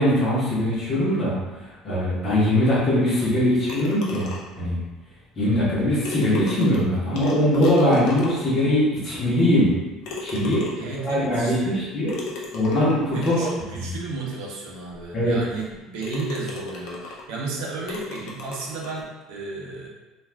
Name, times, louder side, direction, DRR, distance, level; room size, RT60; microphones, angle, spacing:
voice 1, 0.0-1.4 1.8-4.3 4.6-4.8 5.4-9.7 10.2-10.6 11.0-12.1 12.5-13.5 13.7-13.9 15.1-15.4, left 1 dB, 25° left, -7 dB, 0.9 m, -21 dB
sound 1, 3.7-4.7 5.7-5.8 6.0-8.6 9.2-9.3 10.0-11.0 12.1-13.6 14.3-14.4 14.9-15.0 15.5-15.7 16.0-17.3 17.9-19.0, left 3 dB, 55° left, 0.6 m, -36 dB
voice 2, 10.8-11.9 13.1-19.9, right 3 dB, 90° right, -3 dB, 0.7 m, -33 dB
2.4 x 2.3 x 3.3 m, 1.1 s
cardioid pair, 175°, 0 cm